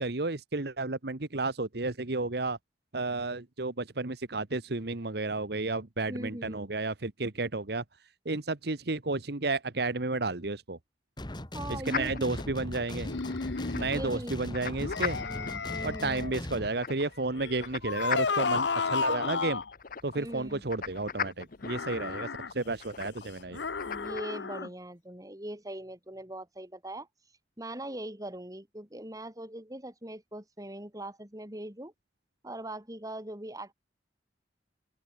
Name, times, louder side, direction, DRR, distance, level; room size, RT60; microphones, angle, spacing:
voice 1, 0.0-2.6 2.9-7.8 8.2-10.8 11.7-13.2 13.7-15.2 15.8-19.6 20.0-22.3 22.5-23.6, right 3 dB, 65° right, 1.4 m, -32 dB
voice 2, 6.1-6.7 11.5-12.6 13.9-14.4 15.3-16.4 20.1-20.6 23.9-27.1 27.6-31.9 32.4-33.7, right 1 dB, 20° right, 4.8 m, -41 dB
sound 1, 11.2-16.7, left 1 dB, 25° left, 1.9 m, -39 dB
sound 2, 11.9-24.2, left 7 dB, 55° left, 0.9 m, -41 dB
sound 3, 13.1-14.0 14.8-16.4 17.4-19.7 21.6-22.5 23.5-24.7, left 5 dB, 90° left, 0.9 m, -33 dB
head